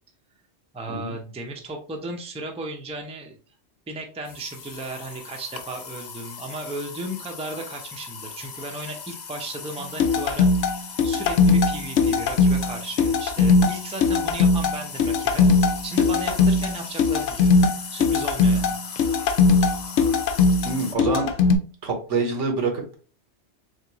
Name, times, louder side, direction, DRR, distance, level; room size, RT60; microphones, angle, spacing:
voice 1, 0.7-3.4 3.9-15.5 15.8-17.5 17.9-18.7, right 2 dB, 10° right, 2 dB, 0.4 m, -35 dB
sound 1, 4.3-21.0, left 6 dB, 50° left, 0.6 m, -38 dB
sound 2, 10.0-21.6, left 4 dB, 85° left, 1.0 m, -20 dB
voice 2, 20.6-21.3 21.8-23.0, right 3 dB, 85° right, 2 dB, 1.4 m, -26 dB
3.6 x 3.6 x 2.9 m, 0.39 s
omnidirectional pair, 1.2 m